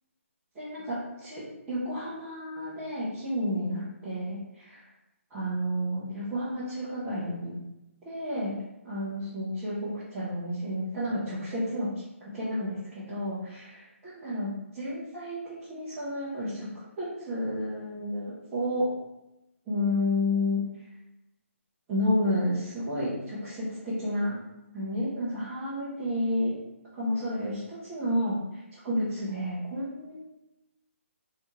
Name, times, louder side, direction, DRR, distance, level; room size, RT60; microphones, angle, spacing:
voice 1, 0.5-4.8 5.3-7.6 8.0-8.6 8.8-11.9 12.2-16.7 17.0-18.9 19.7-20.6 21.9-24.3 24.7-26.5 26.9-28.4 28.7-30.2, left 1 dB, 5° right, -13 dB, 0.3 m, -31 dB
3.4 x 2.7 x 2.8 m, 0.92 s
hypercardioid pair, 180°, 7 cm